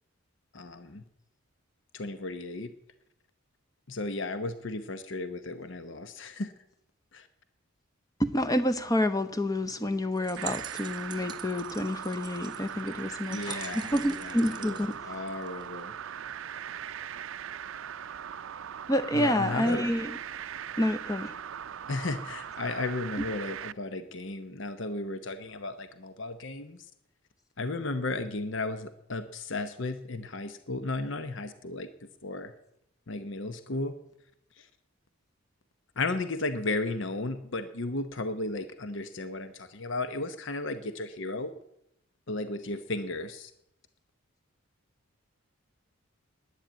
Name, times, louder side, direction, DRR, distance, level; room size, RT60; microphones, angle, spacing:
voice 1, 0.5-1.0 1.9-2.7 3.9-6.5 7.1-7.3 13.2-14.8 15.0-15.9 19.1-19.9 21.9-26.8 27.6-31.9 32.2-32.5 33.1-33.9 34.6-34.7 36.0-41.5 42.3-43.5, left 2 dB, 60° left, 0.9 m, -34 dB
voice 2, 8.2-15.0 18.9-20.2 20.8-21.3 23.2-23.3, left 1 dB, 15° left, 0.8 m, -28 dB
sound 1, 10.2-15.8, right 8 dB, 20° right, 0.8 m, -45 dB
sound 2, 10.4-23.7, right 8 dB, 65° right, 0.4 m, -40 dB
10.5 x 10.5 x 9.1 m
head